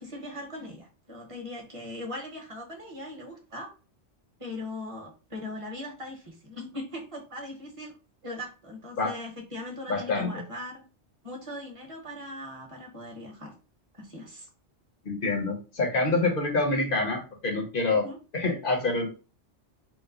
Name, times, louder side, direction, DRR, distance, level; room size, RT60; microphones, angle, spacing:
voice 1, 0.0-3.7 4.4-7.9 8.2-10.8 11.2-13.5 13.9-14.5 17.9-18.2, left 1 dB, 30° right, 1 dB, 0.9 m, -40 dB
voice 2, 9.9-10.4 15.0-19.1, left 3 dB, 50° left, 1 dB, 1.0 m, -27 dB
3.0 x 2.0 x 3.7 m, 0.33 s
omnidirectional pair, 1.2 m